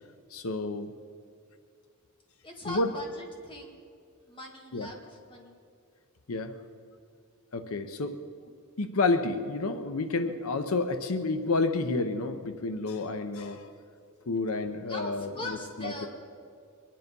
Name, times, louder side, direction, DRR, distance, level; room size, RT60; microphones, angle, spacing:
voice 1, 0.3-0.9 2.7-2.9 4.7-4.9 6.3-6.5 7.5-8.2 8.8-13.7 14.3-16.1, left 3 dB, 90° left, 9 dB, 0.8 m, -30 dB
voice 2, 2.4-3.8 4.3-5.6 14.9-16.1, left 1 dB, 25° left, 0 dB, 2.1 m, -41 dB
23.0 x 10.5 x 5.4 m, 2.3 s
head